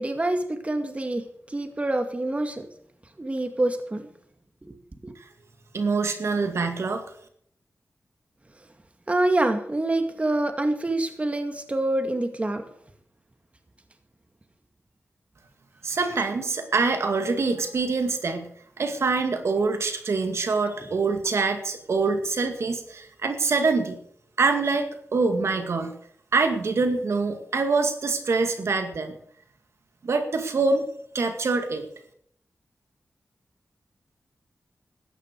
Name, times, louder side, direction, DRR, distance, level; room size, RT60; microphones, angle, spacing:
voice 1, 0.0-2.7 3.2-4.1 4.6-4.8 5.0-5.1 9.1-12.6, right 2 dB, 25° right, 6 dB, 2.1 m, -26 dB
voice 2, 5.7-7.0 15.8-18.5 18.8-24.0 24.4-25.9 26.3-29.1 30.0-30.9 31.1-31.8, right 4 dB, 70° right, 6 dB, 2.2 m, -25 dB
16.5 x 13.5 x 4.7 m, 0.66 s
cardioid pair, 70°, 5 cm